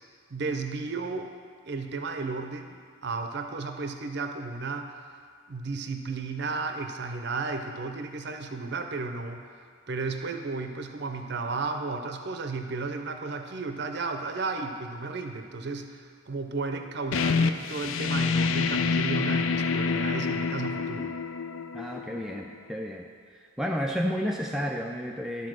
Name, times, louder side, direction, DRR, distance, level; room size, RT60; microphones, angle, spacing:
voice 1, 0.3-1.3 1.7-5.0 5.5-9.5 9.9-21.1, right 4 dB, 55° right, 6 dB, 0.6 m, -33 dB
sound 1, 17.1-22.6, left 5 dB, 75° left, 0.4 m, -27 dB
voice 2, 21.7-23.0 23.6-25.5, equal, ahead, 0 dB, 0.3 m, -31 dB
12.0 x 4.2 x 6.3 m, 2.1 s
head